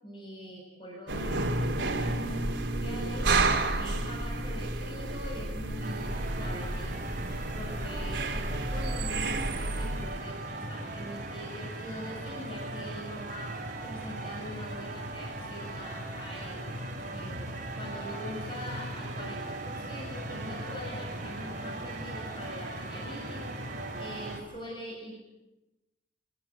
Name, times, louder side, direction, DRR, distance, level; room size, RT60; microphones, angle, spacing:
voice 1, 0.0-3.3 3.8-7.0 7.6-16.6 17.1-23.4 24.0-25.1, equal, 25° left, -2 dB, 7.8 m, -43 dB
sound 1, 1.1-10.2, right 2 dB, 85° right, 3.2 m, -31 dB
sound 2, 5.8-24.4, right 1 dB, 45° right, 6.4 m, -38 dB
28.0 x 21.5 x 8.3 m, 0.98 s
head